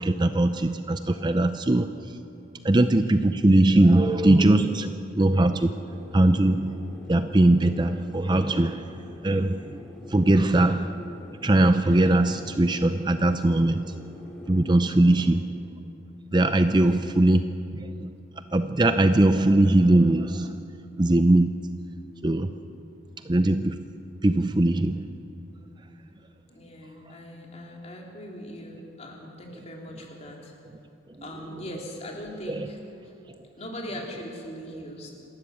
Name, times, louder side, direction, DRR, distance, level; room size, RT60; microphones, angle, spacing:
voice 1, 0.0-1.9 2.6-5.8 6.1-6.7 7.1-8.8 9.2-9.8 10.1-10.9 11.4-14.0 14.5-15.5 16.3-17.4 17.7-18.1 18.5-20.5 21.0-21.5 22.2-22.5 23.3-23.8 24.2-25.1 32.5-32.7, right 1 dB, 25° right, 9 dB, 0.5 m, -20 dB
voice 2, 2.6-2.9 15.2-15.6 16.7-17.1 23.1-23.2 26.5-30.5 31.2-32.8 33.5-35.1, equal, 35° left, 0 dB, 3.4 m, -40 dB
sound 1, 5.6-15.3, left 1 dB, 5° left, 2.9 m, -45 dB
28.0 x 13.0 x 8.4 m, 2.8 s
head